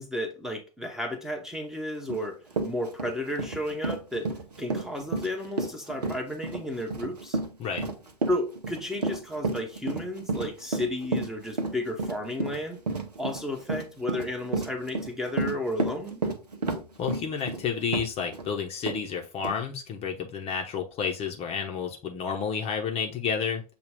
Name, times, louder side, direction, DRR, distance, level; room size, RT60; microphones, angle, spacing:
voice 1, 0.0-2.4 2.6-4.3 4.6-7.4 8.3-12.8 13.2-16.2, left 1 dB, ahead, 0.8 m, -33 dB
Run, 2.1-2.2 2.5-18.5 18.9-19.0 19.4-19.6, right 3 dB, 85° right, 0.7 m, -31 dB
voice 2, 7.6-7.9 17.0-23.6, left 6 dB, 30° left, 0.7 m, -30 dB
6.7 x 2.3 x 3.3 m
figure-of-eight pair, 90°, 20 cm